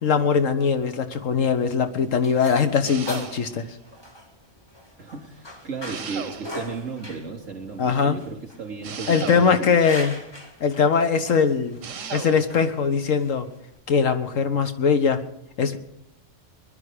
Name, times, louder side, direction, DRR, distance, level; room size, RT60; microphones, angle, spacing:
voice 1, 0.0-3.7 7.8-8.2 9.1-10.2 10.6-11.8 12.1-13.5 13.9-15.2 15.6-15.8, left 6 dB, 90° left, 8 dB, 1.5 m, -21 dB
sound 1, 1.5-13.8, left 1 dB, 20° left, 1.7 m, -42 dB
sound 2, 2.8-3.7 5.9-6.8 8.8-9.9 11.8-12.6, right 6 dB, 90° right, 1.4 m, -36 dB
voice 2, 5.0-9.8, right 4 dB, 70° right, 1 dB, 3.7 m, -35 dB
21.5 x 11.5 x 5.0 m, 0.78 s
omnidirectional pair, 1.3 m